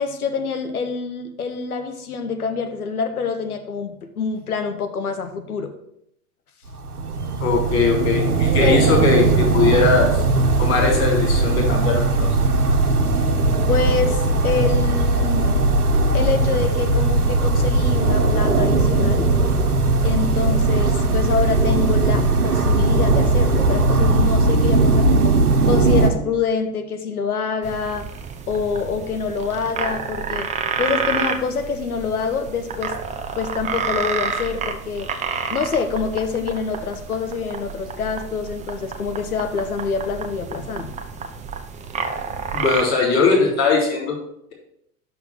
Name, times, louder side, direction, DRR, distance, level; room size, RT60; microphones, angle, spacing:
voice 1, 0.0-5.7 8.6-8.8 13.7-15.7 16.1-19.3 20.0-28.1 28.5-30.5 30.8-33.0 33.4-35.1 35.5-40.9, left 5 dB, 75° left, 7 dB, 1.1 m, -26 dB
sound 1, 6.7-26.1, right 3 dB, 90° right, 0.9 m, -18 dB
voice 2, 7.4-10.2 10.6-12.3 42.5-44.2, left 4 dB, 35° left, -2 dB, 3.8 m, -20 dB
sound 2, 27.6-42.8, right 5 dB, 15° right, 0.6 m, -29 dB
6.1 x 5.9 x 6.1 m, 0.77 s
figure-of-eight pair, 85°, 44 cm